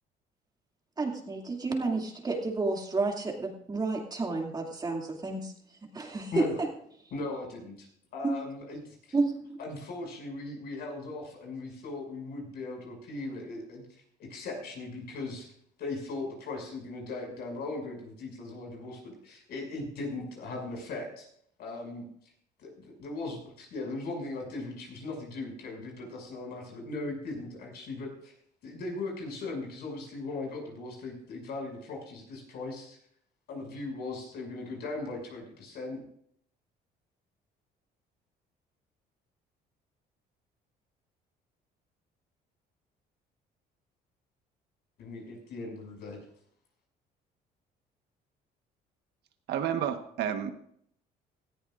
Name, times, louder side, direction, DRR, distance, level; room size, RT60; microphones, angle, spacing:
voice 1, 1.0-5.5 5.8-6.7 8.2-8.3 9.1-9.6, right 3 dB, 25° right, 1 dB, 2.5 m, -31 dB
voice 2, 7.1-7.9 8.1-9.1 9.6-13.8 14.2-15.5 15.8-21.3 21.6-22.1 22.6-28.3 28.6-33.0 33.5-36.0 45.0-46.2, left 3 dB, 70° left, 0 dB, 6.5 m, -38 dB
voice 3, 49.5-50.5, right 9 dB, 75° right, 7 dB, 1.3 m, -30 dB
18.5 x 14.0 x 2.5 m, 0.67 s
cardioid pair, 110°, 17 cm